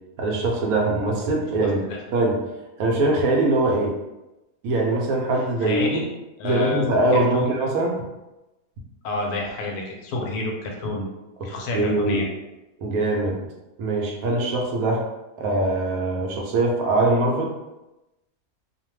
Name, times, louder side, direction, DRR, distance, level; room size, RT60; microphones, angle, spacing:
voice 1, 0.2-1.8 2.1-2.4 2.8-3.9 4.6-6.0 6.4-7.9 11.7-12.2 12.8-13.4 13.8-15.0 15.4-17.5, right 2 dB, 70° right, -1 dB, 1.0 m, -22 dB
voice 2, 5.6-6.1 6.4-7.5 9.0-11.1 11.4-12.3, left 3 dB, 75° left, 0 dB, 1.1 m, -28 dB
2.7 x 2.1 x 3.0 m, 0.99 s
omnidirectional pair, 1.7 m